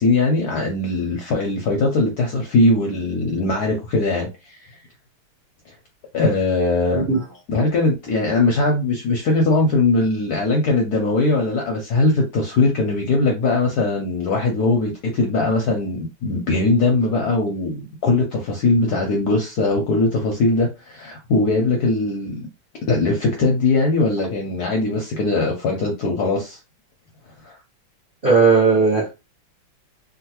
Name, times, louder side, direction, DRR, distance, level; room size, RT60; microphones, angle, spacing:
voice 1, 0.0-4.7 6.1-7.1 7.5-22.5 22.9-26.6 27.4-27.6, left 2 dB, 70° left, 0.9 m, -20 dB
voice 2, 28.2-29.1, right 4 dB, 60° right, 0.5 m, -16 dB
3.7 x 2.2 x 2.9 m
omnidirectional pair, 2.4 m